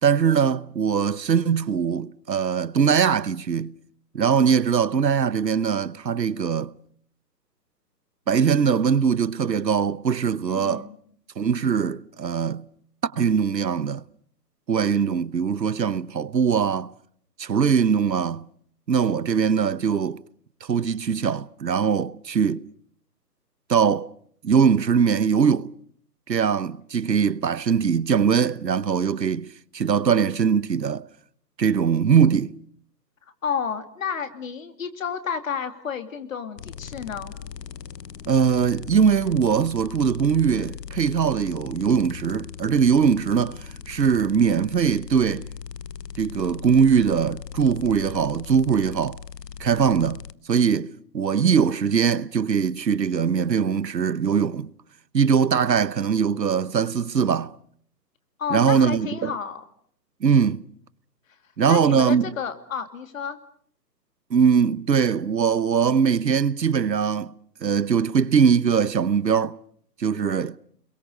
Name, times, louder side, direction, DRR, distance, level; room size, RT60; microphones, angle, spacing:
voice 1, 0.0-3.8 4.1-6.7 8.3-10.9 11.4-12.7 13.0-14.0 14.7-16.9 17.4-18.5 18.9-20.2 20.6-22.6 23.7-24.1 24.4-25.7 26.3-31.1 31.6-32.6 38.3-45.5 46.2-49.2 49.6-54.7 55.1-57.5 58.5-59.4 60.2-60.6 61.6-62.3 64.3-67.3 67.6-69.6 70.0-70.6, right 7 dB, 90° right, 1.1 m, -21 dB
voice 2, 10.5-11.0 33.4-37.3 58.4-59.6 61.7-63.4, left 6 dB, 50° left, 2.7 m, -31 dB
sound 1, 36.6-50.3, left 7 dB, 75° left, 1.0 m, -39 dB
30.0 x 22.5 x 6.6 m
hypercardioid pair, 155°, 49 cm